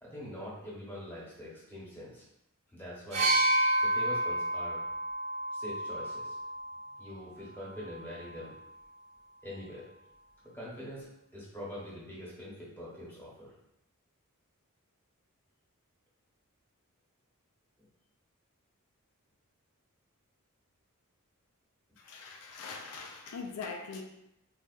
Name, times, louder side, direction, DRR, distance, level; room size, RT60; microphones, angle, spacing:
voice 1, 0.0-2.3 2.7-3.3 3.8-4.8 5.5-6.4 7.0-8.5 9.4-9.8 10.5-13.5, equal, 10° left, -6 dB, 1.0 m, -44 dB
sound 1, 3.1-6.9 8.0-8.1, right 1 dB, 30° right, 0.7 m, -30 dB
voice 2, 22.0-24.0, left 4 dB, 85° left, 3 dB, 0.4 m, -42 dB
4.0 x 2.4 x 2.4 m, 0.82 s
head